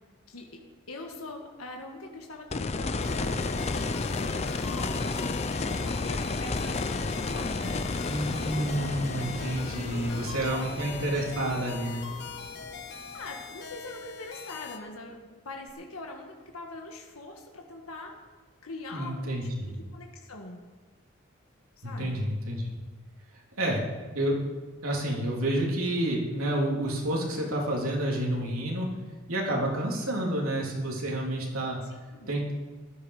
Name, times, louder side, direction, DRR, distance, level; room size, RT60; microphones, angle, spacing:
voice 1, 0.3-0.6 0.9-3.4 3.9-5.3 5.6-7.8 8.8-9.3 9.9-10.8 13.1-15.2 15.4-18.1 18.6-19.4 19.9-20.6 21.8-22.3 31.8-32.3, left 2 dB, 85° left, 1 dB, 1.6 m, -43 dB
sound 1, 2.5-13.4 15.7-15.8, left 3 dB, 30° left, 0.6 m, -32 dB
sound 2, 3.0-14.8, left 5 dB, 50° left, 1.5 m, -42 dB
voice 2, 8.1-12.1 18.9-19.7 21.8-22.6 23.6-23.9 24.1-24.4 24.8-28.9 29.3-31.8 32.3-32.5, right 1 dB, 85° right, -2 dB, 3.4 m, -29 dB
15.0 x 12.5 x 4.9 m, 1.3 s
head